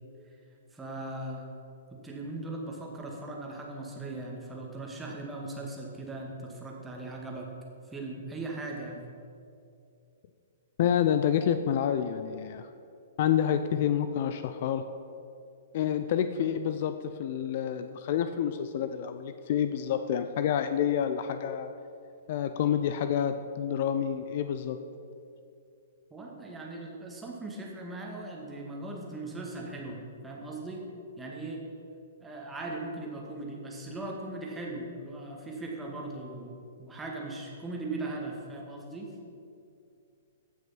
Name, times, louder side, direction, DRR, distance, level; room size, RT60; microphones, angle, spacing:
voice 1, 0.7-1.5 2.0-7.5 7.9-9.1 26.1-30.9 31.2-31.6 32.2-39.1, right 2 dB, 10° right, -1 dB, 2.1 m, -39 dB
voice 2, 10.8-12.7 13.2-14.8 15.7-21.7 22.3-24.8, left 9 dB, 50° left, 9 dB, 0.5 m, -28 dB
15.5 x 6.1 x 5.9 m, 2.5 s
figure-of-eight pair, 115°, 0 cm